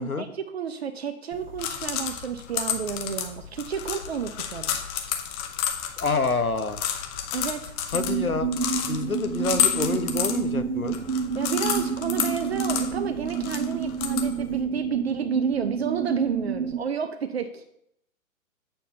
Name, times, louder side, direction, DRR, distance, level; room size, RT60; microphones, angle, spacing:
voice 1, 0.0-4.8 7.3-7.7 11.3-17.6, right 7 dB, 50° right, 10 dB, 0.8 m, -31 dB
sound 1, 1.3-14.6, left 9 dB, 20° left, 0.8 m, -31 dB
voice 2, 6.0-6.8 7.9-8.5 8.8-11.0, left 3 dB, 90° left, 9 dB, 1.2 m, -27 dB
sound 2, 7.9-16.8, right 6 dB, 70° right, 1.5 m, -29 dB
9.2 x 7.0 x 5.6 m, 0.75 s
figure-of-eight pair, 125°, 41 cm